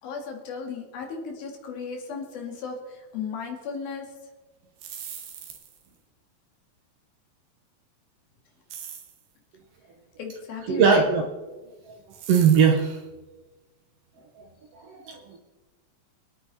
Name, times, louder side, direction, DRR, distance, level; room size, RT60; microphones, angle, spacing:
voice 1, 0.0-4.1 10.2-11.1, left 5 dB, 85° left, 1 dB, 4.1 m, -35 dB
sound 1, 4.6-5.9 8.7-9.2 12.1-12.8, right 8 dB, 90° right, 3.6 m, -40 dB
voice 2, 10.7-11.2 11.9-12.0 12.3-13.0 14.7-15.4, right 6 dB, 65° right, 3 dB, 1.6 m, -20 dB
26.0 x 9.3 x 4.3 m, 1.2 s
omnidirectional pair, 4.1 m